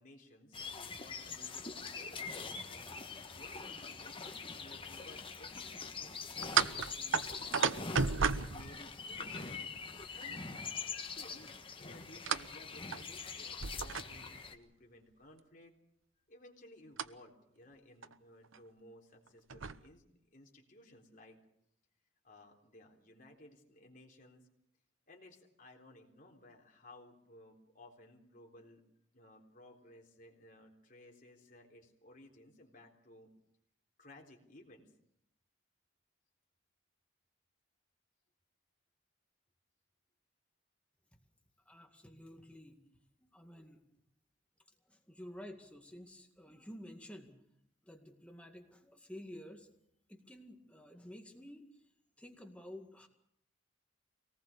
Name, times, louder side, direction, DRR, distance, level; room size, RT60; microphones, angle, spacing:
voice 1, 0.0-4.2 4.6-8.1 8.5-9.8 10.1-10.5 11.0-15.7 16.3-20.0 20.3-21.4 22.2-24.5 25.1-28.8 29.1-33.3 34.0-34.9, left 1 dB, 45° left, 0 dB, 3.8 m, -58 dB
sound 1, 0.5-14.5, left 5 dB, 25° left, 1.5 m, -44 dB
sound 2, 6.4-9.4 12.3-12.5 12.9-13.0 13.6-14.4 17.0-17.1 18.0-18.1 18.4-18.6 19.3-19.8, right 5 dB, 80° right, 0.8 m, -33 dB
voice 2, 41.7-42.8 43.2-43.8 44.9-47.5 47.8-49.7 50.1-51.6 52.2-53.1, left 1 dB, 5° left, 3 dB, 2.1 m, -51 dB
24.5 x 19.0 x 6.8 m, 0.73 s
head